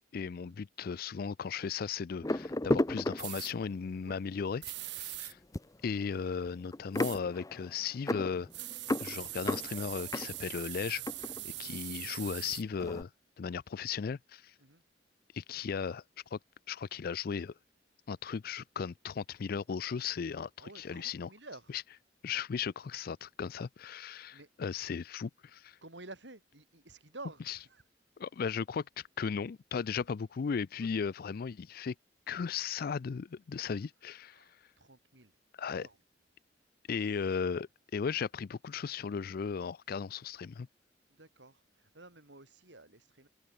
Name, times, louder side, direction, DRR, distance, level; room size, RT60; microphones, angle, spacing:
voice 1, 0.1-5.4 5.8-8.5 9.0-11.0 11.4-13.1 13.4-14.5 15.3-16.0 16.3-16.4 16.7-17.5 18.1-21.3 21.7-21.8 22.2-25.8 27.5-27.6 28.2-31.9 32.3-34.4 35.6-35.9 36.9-40.7, left 6 dB, 55° left, 0.4 m, -36 dB
sound 1, 2.2-3.8 4.5-4.7 5.0-12.1 12.4-13.0, left 1 dB, 20° left, 0.7 m, -35 dB
sound 2, 3.2-3.5 4.6-5.3 6.9-7.2 8.5-12.6, right 18 dB, 70° right, 0.8 m, -42 dB
voice 2, 20.6-21.8 24.3-24.5 25.8-27.8 30.0-30.1 30.8-30.9 34.3-35.4 35.7-36.0 36.9-37.4 41.1-43.3, right 2 dB, 85° right, 6.9 m, -52 dB
open air
head